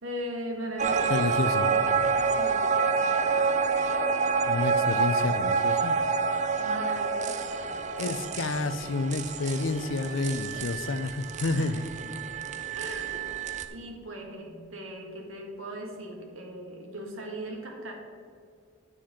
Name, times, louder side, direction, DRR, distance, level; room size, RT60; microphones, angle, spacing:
voice 1, 0.0-1.3 1.7-3.6 6.6-7.7 11.5-11.9 12.7-13.4 13.7-17.9, right 1 dB, 80° right, 1 dB, 1.8 m, -39 dB
sound 1, 0.8-13.6, right 5 dB, 35° right, 0.5 m, -28 dB
voice 2, 1.1-1.7 4.5-6.0 8.0-11.8, left 3 dB, 65° left, 12 dB, 0.5 m, -29 dB
9.8 x 7.4 x 4.4 m, 2.3 s
head